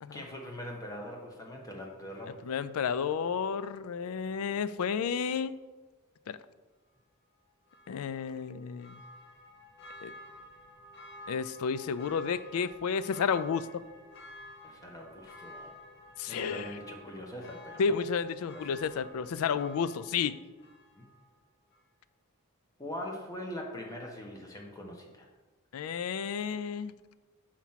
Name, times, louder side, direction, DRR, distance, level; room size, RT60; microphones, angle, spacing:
voice 1, 0.1-2.4 14.6-15.7 16.3-18.0 18.5-18.8 21.0-21.1 22.8-25.3, left 1 dB, 15° left, 0 dB, 1.0 m, -42 dB
voice 2, 2.4-5.5 6.3-6.4 7.9-9.0 10.0-10.1 11.3-13.8 16.2-16.8 17.8-20.4 25.7-27.0, left 6 dB, 75° left, 15 dB, 0.3 m, -31 dB
Church bell, 7.7-21.3 21.7-21.8, left 1 dB, 50° left, 1.0 m, -51 dB
6.0 x 4.4 x 5.6 m, 1.3 s
head